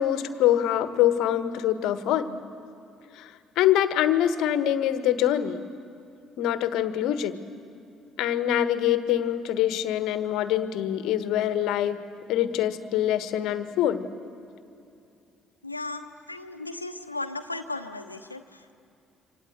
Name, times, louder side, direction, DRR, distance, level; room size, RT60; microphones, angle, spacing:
voice 1, 0.0-2.4 3.2-5.6 6.4-7.4 8.2-12.0 12.3-14.1, left 11 dB, 60° left, 12 dB, 1.4 m, -24 dB
voice 2, 15.6-18.7, left 2 dB, 90° left, 8 dB, 1.1 m, -36 dB
28.0 x 25.5 x 8.0 m, 2.6 s
figure-of-eight pair, 45°, 0 cm